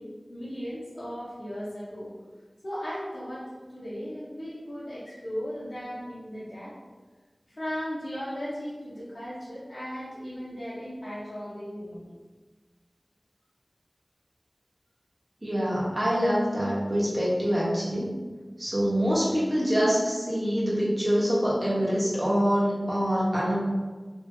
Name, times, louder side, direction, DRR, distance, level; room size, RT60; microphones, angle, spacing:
voice 1, 0.0-2.1 2.6-3.4 3.7-6.8 7.6-12.1, equal, 65° left, -11 dB, 1.0 m, -36 dB
voice 2, 15.4-18.1 18.6-23.6, equal, 35° right, -7 dB, 1.1 m, -25 dB
2.8 x 2.7 x 2.7 m, 1.3 s
wide cardioid pair, 55°, 0 cm